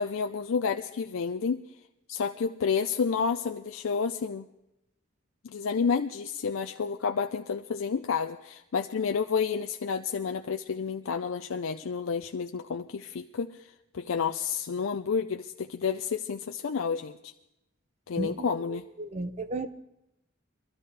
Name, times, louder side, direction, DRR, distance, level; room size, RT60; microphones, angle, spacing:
voice 1, 0.0-1.6 2.1-4.5 5.4-13.5 13.9-17.3 18.1-18.8, left 5 dB, 80° left, 6 dB, 0.5 m, -30 dB
voice 2, 18.2-19.7, right 2 dB, 35° right, 10 dB, 0.7 m, -35 dB
22.5 x 13.0 x 3.3 m, 0.89 s
head